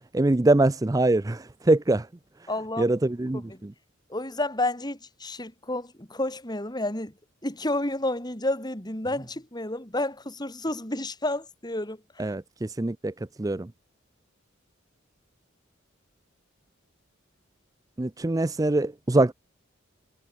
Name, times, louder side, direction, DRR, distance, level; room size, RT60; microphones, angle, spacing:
voice 1, 0.1-2.1 2.8-3.7 12.2-13.1 13.4-13.7 18.0-19.3, right 2 dB, 15° right, 0.5 m, -23 dB
voice 2, 2.5-2.9 3.4-3.6 4.1-7.1 7.4-12.3, left 1 dB, 20° left, 4.4 m, -30 dB
head